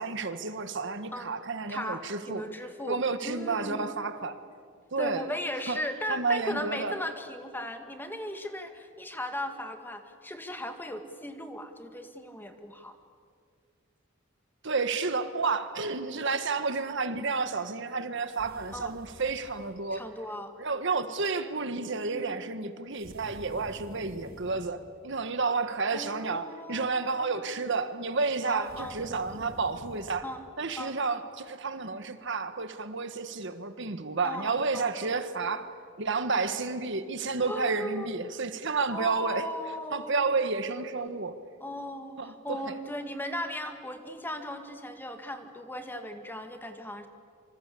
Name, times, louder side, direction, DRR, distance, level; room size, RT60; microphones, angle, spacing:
voice 1, 0.0-2.5 2.9-4.3 4.9-5.3 5.7-5.8 6.1-7.0 14.6-20.0 20.6-30.3 30.6-35.7 36.0-39.5 39.9-41.4 42.2-42.8, right 4 dB, 65° right, 10 dB, 1.5 m, -31 dB
voice 2, 1.7-3.0 3.2-3.9 5.0-13.0 18.7-19.0 19.9-20.9 22.1-22.4 25.9-27.5 28.5-29.0 30.2-30.4 30.8-31.0 34.2-35.1 36.3-36.5 37.5-38.1 38.9-40.1 41.6-47.1, left 1 dB, 10° left, 6 dB, 1.9 m, -37 dB
sound 1, 18.3-19.8 23.0-24.8 28.6-30.2, right 1 dB, 50° right, 2.4 m, -49 dB
26.5 x 25.5 x 8.5 m, 2.1 s
head